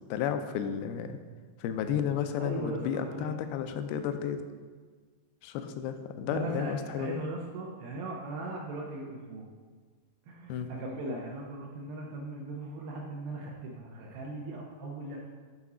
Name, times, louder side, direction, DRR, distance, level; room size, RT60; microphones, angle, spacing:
voice 1, 0.1-1.2 1.6-4.4 5.4-7.2 10.5-10.7, left 8 dB, 80° left, 8 dB, 2.3 m, -32 dB
voice 2, 2.4-3.3 6.3-9.5 10.3-15.2, right 2 dB, 75° right, -2 dB, 2.5 m, -38 dB
8.3 x 4.1 x 4.9 m, 1.5 s
omnidirectional pair, 4.6 m